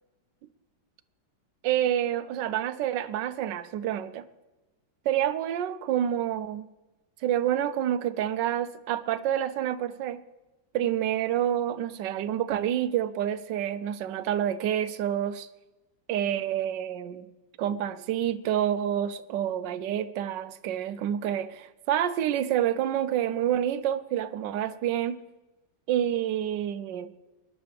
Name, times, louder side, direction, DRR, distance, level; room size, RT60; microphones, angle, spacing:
voice 1, 1.6-4.3 5.0-6.7 7.2-10.2 10.7-15.5 16.1-17.3 17.6-25.2 25.9-27.1, right 10 dB, 75° right, 1.3 m, -28 dB
22.0 x 11.0 x 3.4 m
omnidirectional pair, 2.1 m